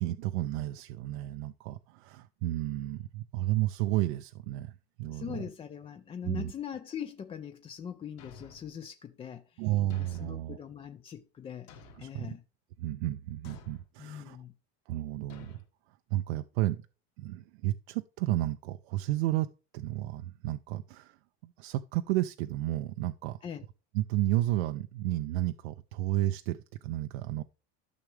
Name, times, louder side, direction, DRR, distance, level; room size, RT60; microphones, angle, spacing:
voice 1, 0.0-5.4 6.2-6.5 9.6-10.6 12.0-12.4 12.8-14.4 14.9-15.6 16.1-16.9 17.2-19.5 19.7-23.4 23.9-27.4, right 15 dB, 80° right, 0.6 m, -32 dB
voice 2, 5.1-9.6 10.0-11.7 12.0-12.4 14.0-14.5 23.4-23.6, left 8 dB, 20° left, 0.4 m, -41 dB
Thump thud, 8.2-8.8 9.9-10.5 11.7-12.2 13.4-13.9 15.3-15.6, left 6 dB, 50° left, 1.9 m, -52 dB
12.5 x 6.0 x 3.3 m
supercardioid pair, 130°, 32 cm